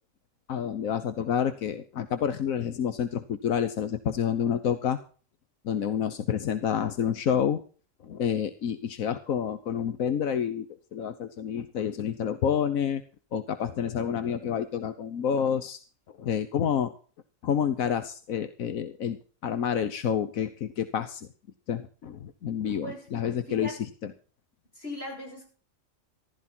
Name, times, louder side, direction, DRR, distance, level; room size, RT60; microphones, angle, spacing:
voice 1, 0.5-5.0 5.6-7.6 8.0-10.7 10.9-13.0 13.3-15.8 16.2-16.9 17.4-21.3 21.7-24.1, left 8 dB, 90° left, 11 dB, 1.4 m, -29 dB
voice 2, 22.8-23.2 23.5-23.8 24.8-25.5, left 1 dB, 50° left, 0 dB, 7.7 m, -39 dB
15.0 x 13.0 x 4.4 m, 0.40 s
omnidirectional pair, 1.4 m